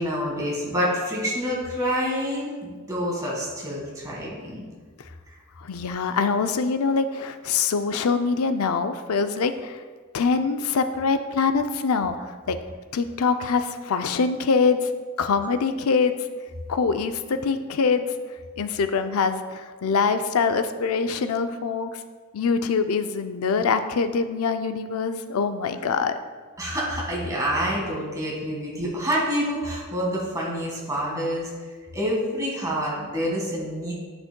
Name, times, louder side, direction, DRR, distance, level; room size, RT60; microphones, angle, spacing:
voice 1, 0.0-4.6 26.6-31.5 31.9-33.9, equal, 15° right, -4 dB, 1.7 m, -27 dB
voice 2, 5.6-9.8 10.1-12.6 12.9-14.9 15.2-16.2 16.7-18.1 18.6-21.9 22.3-26.2, left 5 dB, 90° left, 8 dB, 0.5 m, -24 dB
10.0 x 6.1 x 2.2 m, 1.5 s
head